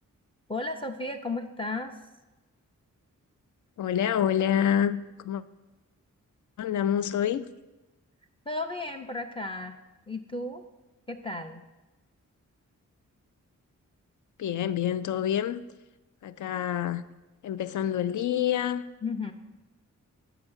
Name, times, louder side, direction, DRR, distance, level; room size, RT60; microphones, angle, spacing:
voice 1, 0.5-2.0 8.5-9.7 10.1-10.6 11.1-11.6 19.0-19.3, left 2 dB, 15° left, 0.5 m, -34 dB
voice 2, 3.8-5.4 6.6-7.5 14.4-15.6 16.2-17.0 17.4-18.8, left 10 dB, 70° left, 0.5 m, -27 dB
7.6 x 5.6 x 6.1 m
wide cardioid pair, 115°, 31 cm